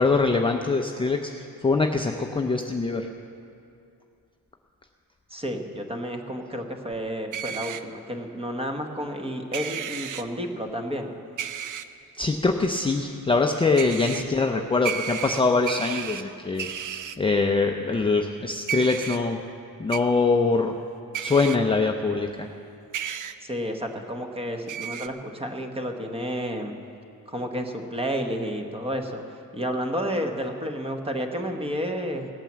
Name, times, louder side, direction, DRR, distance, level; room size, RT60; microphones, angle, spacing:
voice 1, 0.0-3.1 12.2-19.4 19.8-20.7 21.2-22.5, left 3 dB, 15° left, 3 dB, 0.4 m, -23 dB
voice 2, 5.3-11.2 14.5-14.6 23.4-26.7 27.3-29.2 29.5-32.3, equal, 15° right, 4 dB, 1.0 m, -31 dB
sound 1, 7.3-7.8 9.5-10.2 11.4-11.8 13.8-14.2 14.8-16.2 16.6-17.2 18.7-19.2 19.9-20.0 21.1-21.6 22.9-23.3 24.7-25.1, right 9 dB, 55° right, 0.6 m, -32 dB
17.0 x 9.0 x 7.3 m, 2.5 s
wide cardioid pair, 165°, 38 cm